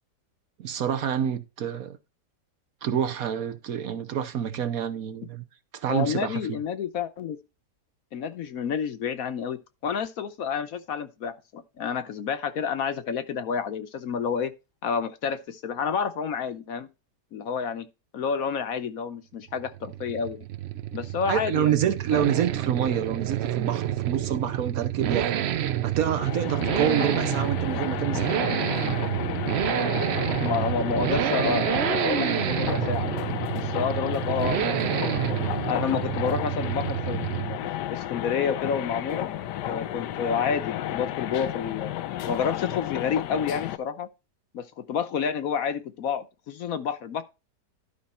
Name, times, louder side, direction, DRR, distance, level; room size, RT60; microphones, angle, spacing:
voice 1, 0.6-2.0 2.8-5.4 5.7-6.6 21.3-25.3 25.8-28.4, right 9 dB, 65° right, 1.2 m, -27 dB
voice 2, 5.9-7.4 8.1-14.5 14.8-16.9 17.3-17.9 18.1-20.4 20.9-21.8 22.1-22.3 30.4-33.2 33.5-37.6 37.9-39.3 39.6-41.9 42.3-44.1 44.5-47.2, left 6 dB, 65° left, 1.1 m, -29 dB
Accelerating revving vroom, 19.5-37.7 37.9-38.0, right 11 dB, 85° right, 0.5 m, -28 dB
sound 1, 26.0-43.8, left 12 dB, 85° left, 1.3 m, -32 dB
11.5 x 5.3 x 4.3 m
omnidirectional pair, 1.8 m